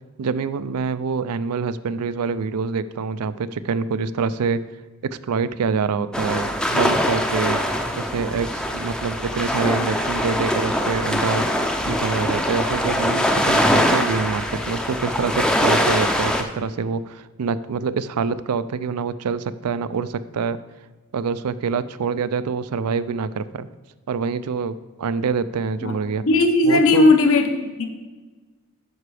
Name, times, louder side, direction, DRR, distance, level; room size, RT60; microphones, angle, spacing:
voice 1, 0.2-4.6 5.0-7.6 7.9-11.5 11.8-20.6 21.1-23.7 24.1-26.2 26.6-27.1, right 5 dB, 90° right, 0.4 m, -26 dB
sound 1, 6.1-16.4, equal, 5° left, 0.5 m, -22 dB
voice 2, 26.3-27.9, left 2 dB, 65° left, 0.9 m, -17 dB
9.5 x 5.9 x 4.9 m
head